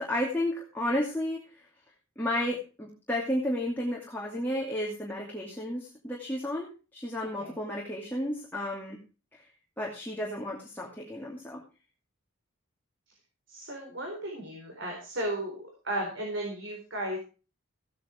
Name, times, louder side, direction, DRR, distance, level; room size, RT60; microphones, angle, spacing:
voice 1, 0.0-1.4 2.2-9.0 9.8-11.6, left 1 dB, 10° left, -3 dB, 2.5 m, -32 dB
voice 2, 13.5-17.2, right 1 dB, 60° right, 0 dB, 4.3 m, -35 dB
16.0 x 9.2 x 4.5 m, 0.34 s
head